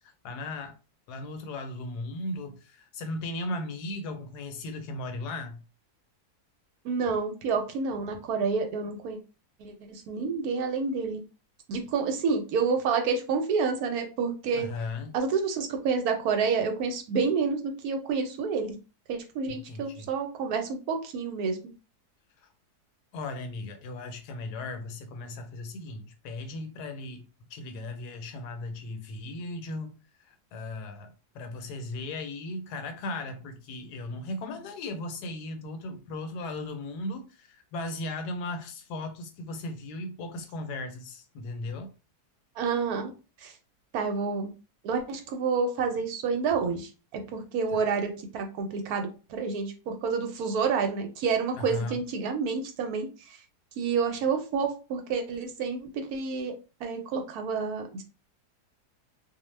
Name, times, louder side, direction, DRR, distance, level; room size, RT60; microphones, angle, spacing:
voice 1, 0.2-0.7 1.1-5.6 14.5-15.2 19.5-20.1 23.1-29.9 30.3-41.9 47.7-47.8 51.5-52.0, left 2 dB, 80° left, 1.1 m, -37 dB
voice 2, 6.8-9.2 9.6-11.2 11.7-14.7 15.1-18.7 19.1-21.6 42.6-43.1 43.4-43.5 43.9-44.5 44.8-53.4 53.8-56.5 56.8-58.0, right 5 dB, 70° right, 1.0 m, -29 dB
2.6 x 2.1 x 3.1 m
omnidirectional pair, 1.7 m